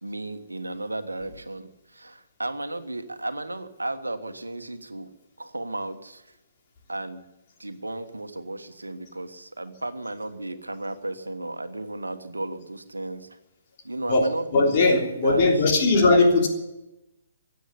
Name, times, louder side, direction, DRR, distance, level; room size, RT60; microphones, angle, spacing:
voice 1, 0.0-5.1 5.4-6.4 6.9-7.2 7.6-13.4 13.8-14.8 15.2-15.7, right 2 dB, 80° right, 9 dB, 1.3 m, -34 dB
voice 2, 14.1-16.5, left 3 dB, 35° left, 0 dB, 3.3 m, -19 dB
15.5 x 9.4 x 9.7 m, 0.96 s
figure-of-eight pair, 130°, 0 cm